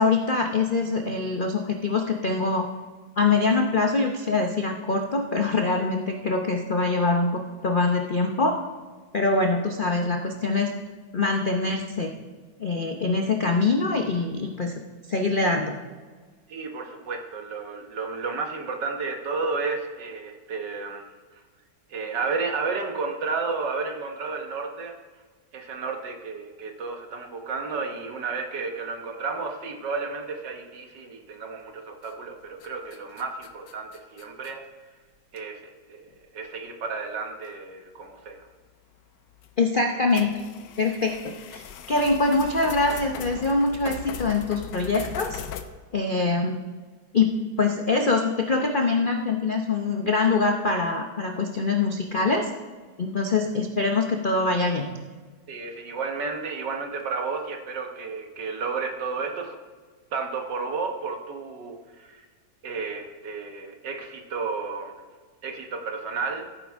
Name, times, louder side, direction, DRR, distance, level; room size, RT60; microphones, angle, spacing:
voice 1, 0.0-2.7 3.2-8.6 9.1-10.7 11.1-12.1 12.6-14.7 15.1-15.7 39.6-40.4 40.8-45.4 45.9-46.6 47.1-52.5 53.0-54.9, left 3 dB, 90° left, 3 dB, 0.4 m, -24 dB
voice 2, 16.5-21.0 21.9-25.0 25.5-34.6 35.3-38.5 55.5-59.6 60.1-62.3 62.6-64.9 65.4-66.5, right 4 dB, 65° right, 4 dB, 1.7 m, -32 dB
sound 1, 32.0-32.3 32.6-34.5 35.4-35.5 36.1-36.2 37.5-37.6 39.4-39.5 40.1-45.6, left 8 dB, 70° left, 1.3 m, -39 dB
15.5 x 9.2 x 3.5 m, 1.4 s
omnidirectional pair, 2.1 m